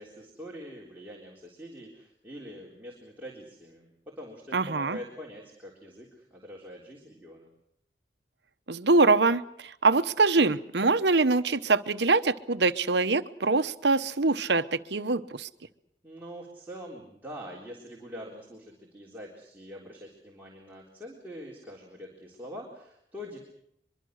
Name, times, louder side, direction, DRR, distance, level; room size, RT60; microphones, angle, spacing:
voice 1, 0.0-7.5 16.0-23.4, equal, 10° right, -3 dB, 3.6 m, -44 dB
voice 2, 4.5-5.0 8.7-15.5, right 3 dB, 75° right, 11 dB, 1.0 m, -24 dB
23.5 x 23.5 x 6.5 m, 0.73 s
head